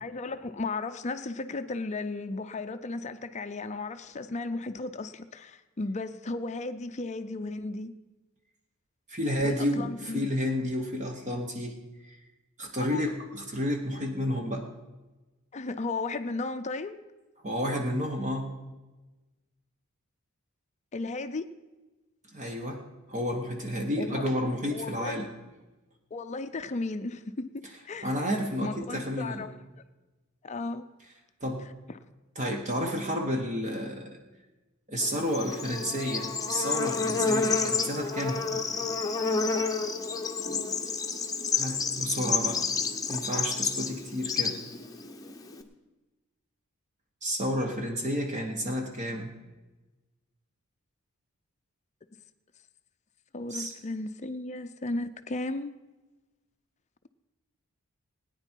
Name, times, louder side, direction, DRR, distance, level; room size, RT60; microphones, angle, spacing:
voice 1, 0.0-7.9 9.4-10.3 12.9-13.0 15.5-17.0 20.9-21.5 24.0-24.3 24.7-25.2 26.1-28.1 28.6-29.5 30.4-30.9 53.3-55.7, left 3 dB, 30° left, 10 dB, 0.5 m, -35 dB
voice 2, 9.1-11.8 12.0-12.2 12.6-14.7 17.4-18.5 22.3-22.8 23.1-25.3 28.0-29.4 31.4-31.7 32.3-34.2 34.9-38.4 38.7-38.8 41.5-42.6 43.1-44.6 47.2-49.3 53.5-53.7, equal, 35° right, 3 dB, 1.2 m, -31 dB
Bird / Insect, 35.0-45.6, left 4 dB, 15° left, 0.9 m, -30 dB
18.0 x 9.7 x 4.5 m, 1.2 s
head